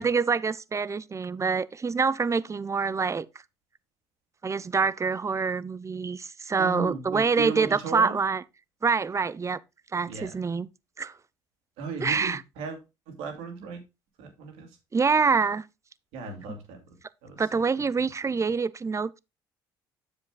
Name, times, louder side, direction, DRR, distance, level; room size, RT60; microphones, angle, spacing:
voice 1, 0.0-3.3 4.4-8.4 8.8-9.6 9.9-10.7 11.0-11.1 12.0-12.4 14.9-15.6 17.4-19.2, right 5 dB, 25° right, 0.6 m, -26 dB
voice 2, 6.6-8.2 10.1-10.3 11.8-12.8 13.1-13.8 14.2-14.8 16.1-17.0 17.2-18.1, right 5 dB, 75° right, 2.6 m, -36 dB
9.8 x 7.3 x 2.3 m
hypercardioid pair, 55°, 11 cm